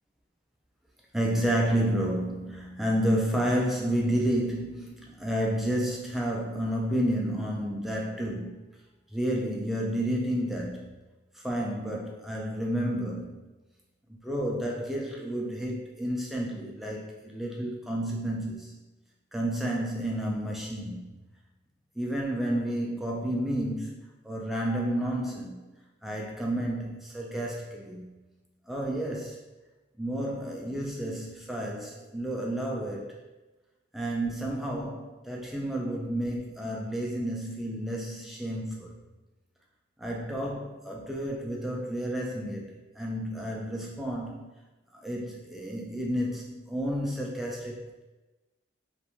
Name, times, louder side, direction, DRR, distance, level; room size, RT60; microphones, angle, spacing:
voice 1, 1.1-8.7 9.1-10.9 11.3-13.5 14.1-18.7 19.3-21.1 22.0-25.7 26.0-28.1 28.7-29.5 30.0-33.2 33.9-39.0 40.0-44.5 45.0-48.0, equal, ahead, -2 dB, 0.3 m, -31 dB
2.4 x 2.2 x 2.9 m, 1.1 s
head